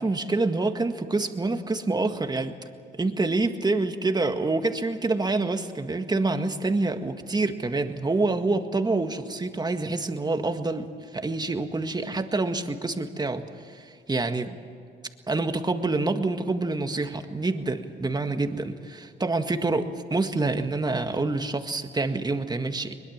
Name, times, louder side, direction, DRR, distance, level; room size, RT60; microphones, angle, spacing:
voice 1, 0.0-2.6 3.0-14.6 15.3-22.9, right 3 dB, 20° right, 7 dB, 1.8 m, -27 dB
22.0 x 21.5 x 7.4 m, 2.4 s
cardioid pair, 90°, 20 cm